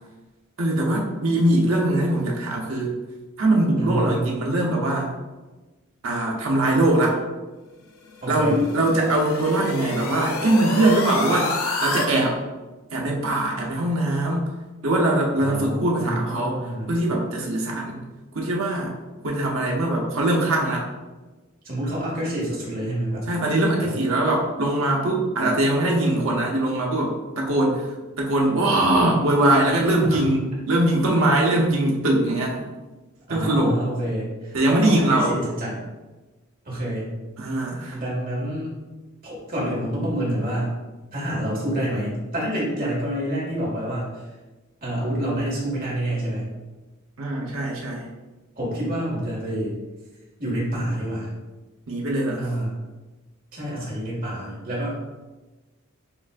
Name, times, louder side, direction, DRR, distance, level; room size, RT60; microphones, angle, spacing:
voice 1, 0.6-2.9 3.4-5.1 6.0-7.2 8.3-11.5 11.8-12.4 12.9-14.4 14.8-16.6 16.9-18.0 18.3-18.9 19.2-20.8 23.3-27.9 28.2-32.6 33.3-33.7 34.5-35.3 37.4-38.0 47.2-48.1 51.9-52.5, right 1 dB, 70° right, -2 dB, 0.8 m, -21 dB
voice 2, 3.8-4.2 8.2-8.6 13.6-13.7 15.4-16.9 20.5-20.6 21.6-23.2 23.8-23.9 30.1-30.2 33.3-35.8 36.6-37.1 37.9-38.7 39.2-40.8 41.1-44.2 44.8-46.5 48.6-49.7 50.4-51.3 52.4-52.7 53.5-55.0, right 1 dB, 45° right, -6 dB, 1.5 m, -28 dB
sound 1, 8.1-12.1, left 3 dB, 80° left, 0.6 m, -29 dB
6.9 x 2.4 x 2.3 m, 1.2 s
head